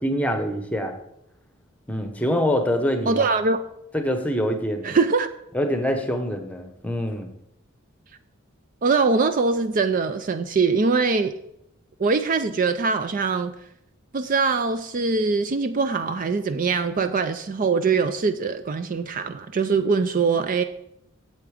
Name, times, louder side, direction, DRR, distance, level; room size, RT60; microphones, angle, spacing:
voice 1, 0.0-1.0 1.9-3.3 3.9-5.0 5.5-7.3, equal, 5° left, 6 dB, 0.9 m, -25 dB
voice 2, 3.1-3.6 4.8-5.3 8.8-11.3 12.0-13.5 14.1-20.6, right 4 dB, 40° right, 9 dB, 0.4 m, -22 dB
8.5 x 7.8 x 4.9 m, 0.80 s
head